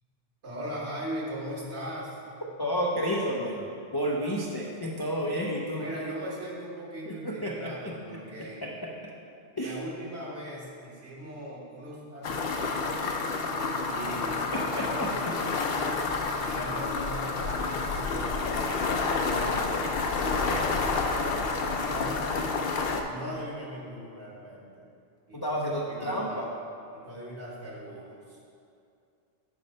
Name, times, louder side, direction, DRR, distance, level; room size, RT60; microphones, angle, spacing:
voice 1, 0.4-2.2 5.8-8.7 9.6-12.9 13.8-15.3 16.4-19.8 20.3-21.1 21.8-22.4 23.1-24.8 25.3-25.4 25.9-26.5 26.9-28.4, equal, 60° right, -6 dB, 1.8 m, -39 dB
voice 2, 2.6-3.6 3.9-5.8 7.1-7.9 8.4-8.9 9.6-9.8 14.5-15.3 25.3-26.5, equal, 35° left, -3 dB, 0.3 m, -31 dB
sound 1, 12.2-23.0, left 4 dB, 60° left, 0.7 m, -29 dB
8.0 x 5.5 x 4.3 m, 2.5 s
omnidirectional pair, 1.3 m